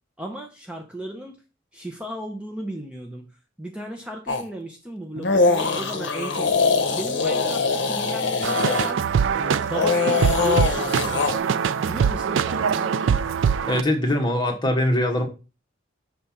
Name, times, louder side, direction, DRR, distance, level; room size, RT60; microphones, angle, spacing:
voice 1, 0.2-1.4 1.7-3.3 3.6-6.5 6.9-9.0 9.4-13.0, right 1 dB, 5° right, 2 dB, 0.7 m, -35 dB
sound 1, 4.3-4.4 5.2-8.9 9.6-11.4, left 4 dB, 65° left, 0.8 m, -22 dB
sound 2, 8.4-13.8, right 7 dB, 80° right, 0.3 m, -23 dB
voice 2, 13.7-15.3, left 1 dB, 25° left, 4 dB, 1.2 m, -22 dB
5.9 x 3.3 x 5.6 m, 0.31 s
head